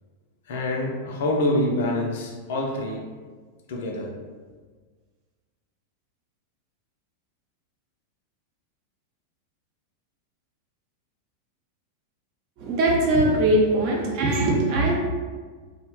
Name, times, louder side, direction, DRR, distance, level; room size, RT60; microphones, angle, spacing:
voice 1, 0.5-3.1 3.7-4.1, left 1 dB, 55° left, 0 dB, 0.5 m, -26 dB
voice 2, 12.6-14.9, right 1 dB, 45° right, -3 dB, 0.7 m, -21 dB
2.7 x 2.1 x 3.0 m, 1.5 s
figure-of-eight pair, 90°, 0 cm